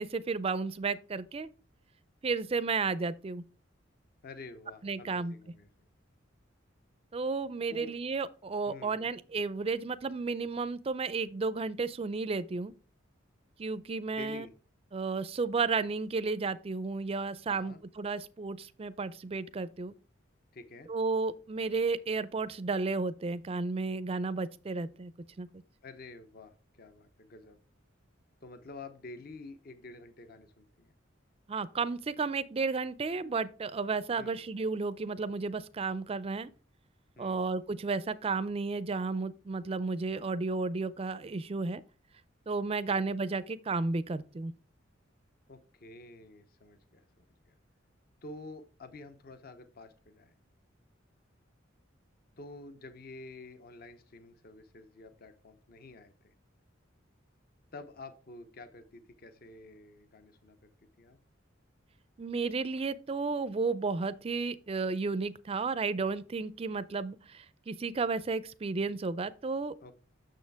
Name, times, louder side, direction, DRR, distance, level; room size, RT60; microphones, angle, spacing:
voice 1, 0.0-1.5 2.2-3.4 4.8-5.3 7.1-12.7 13.6-14.5 14.9-19.9 20.9-25.1 25.4-25.5 31.5-36.5 37.2-41.8 42.5-44.5 62.2-69.9, right 4 dB, 30° right, 0.4 m, -33 dB
voice 2, 4.2-5.7 7.7-7.9 8.7-9.1 14.1-14.5 17.5-17.8 20.5-20.9 25.8-27.6 28.4-30.9 34.2-34.4 37.2-37.4 42.9-43.0 45.5-47.6 48.2-50.3 52.4-56.3 57.7-60.7 61.0-61.2 69.8-69.9, left 3 dB, 50° left, 0.7 m, -49 dB
6.5 x 6.5 x 3.4 m
head